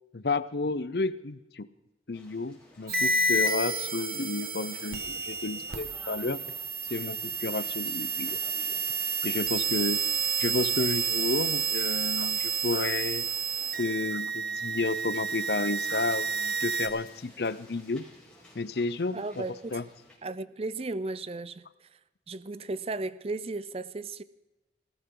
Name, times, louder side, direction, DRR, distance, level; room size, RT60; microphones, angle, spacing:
voice 1, 0.1-1.7 2.1-6.4 6.9-8.4 9.2-10.0 10.4-13.3 13.8-18.1 18.5-19.5 19.7-19.8, left 3 dB, 65° left, 0.7 m, -31 dB
sound 1, 2.1-20.2, left 1 dB, 5° left, 5.2 m, -54 dB
sound 2, 2.9-16.9, right 4 dB, 55° right, 1.6 m, -30 dB
voice 2, 19.1-19.8 20.2-21.7 22.3-24.2, right 2 dB, 35° right, 0.5 m, -35 dB
20.5 x 17.0 x 3.9 m
head